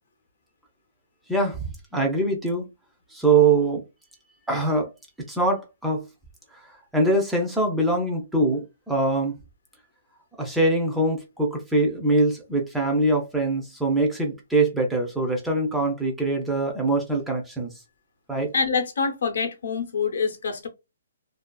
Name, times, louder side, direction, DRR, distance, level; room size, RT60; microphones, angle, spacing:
voice 1, 1.3-1.6 1.9-2.7 3.1-3.8 4.5-4.9 5.3-6.0 6.5-9.3 10.4-17.7 18.3-18.5, right 2 dB, 5° right, 0.4 m, -23 dB
voice 2, 18.5-20.7, left 5 dB, 65° left, 0.7 m, -25 dB
2.4 x 2.3 x 2.2 m
hypercardioid pair, 175°, 0 cm